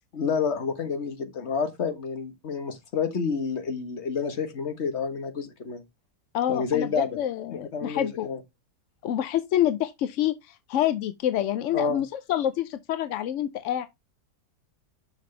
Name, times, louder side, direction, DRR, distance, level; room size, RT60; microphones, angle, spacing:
voice 1, 0.1-5.8 6.5-7.1 7.5-8.4 11.7-12.0, left 6 dB, 45° left, 1.4 m, -29 dB
voice 2, 6.3-8.3 9.0-13.9, left 11 dB, 70° left, 0.7 m, -27 dB
6.7 x 6.0 x 3.2 m
omnidirectional pair, 1.7 m